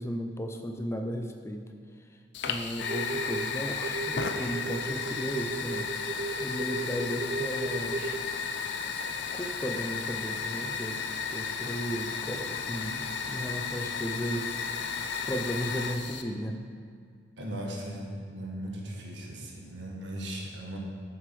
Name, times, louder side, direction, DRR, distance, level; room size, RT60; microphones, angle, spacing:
voice 1, 0.0-1.7 2.1-2.2 2.4-8.0 9.3-16.6, equal, 15° left, 5 dB, 0.5 m, -35 dB
Fire, 2.3-16.2, left 5 dB, 65° left, 0.6 m, -34 dB
sound 1, 2.9-3.5 3.8-8.2, right 2 dB, 55° right, 0.4 m, -35 dB
voice 2, 17.4-20.8, right 1 dB, 75° right, -1 dB, 1.5 m, -38 dB
7.9 x 6.7 x 5.3 m, 2.1 s
head